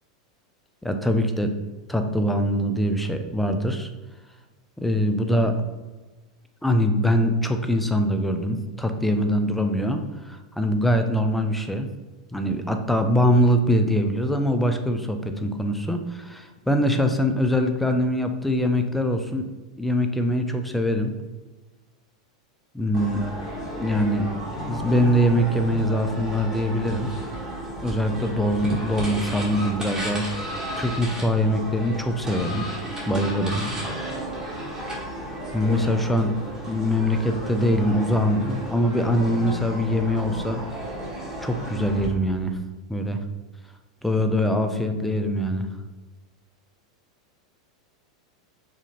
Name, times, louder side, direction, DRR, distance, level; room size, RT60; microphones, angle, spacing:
voice 1, 0.8-1.5 1.9-3.9 4.8-5.6 6.6-11.9 12.3-19.4 19.8-21.1 22.7-23.2 23.8-24.3 24.5-27.1 27.8-32.7 33.0-33.7 35.5-36.3 36.7-40.6 41.4-42.6 42.9-43.2 44.0-45.7, equal, 5° left, 6 dB, 0.4 m, -23 dB
sound 1, 22.9-42.1, right 1 dB, 15° right, 1.5 m, -33 dB
4.9 x 2.7 x 2.9 m, 1.2 s
hypercardioid pair, 110°, 3 cm